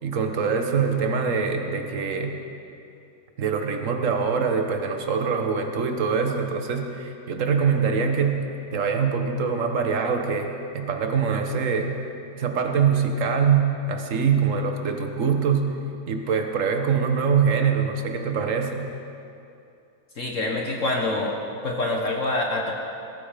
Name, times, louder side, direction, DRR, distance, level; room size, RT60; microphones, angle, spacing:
voice 1, 0.0-2.4 3.4-8.4 8.7-12.0 12.4-15.7 16.1-18.9, right 6 dB, 50° right, 4 dB, 1.5 m, -24 dB
voice 2, 20.2-21.3 21.6-22.7, left 2 dB, 50° left, 0 dB, 1.7 m, -25 dB
19.0 x 14.0 x 5.2 m, 2.6 s
omnidirectional pair, 1.9 m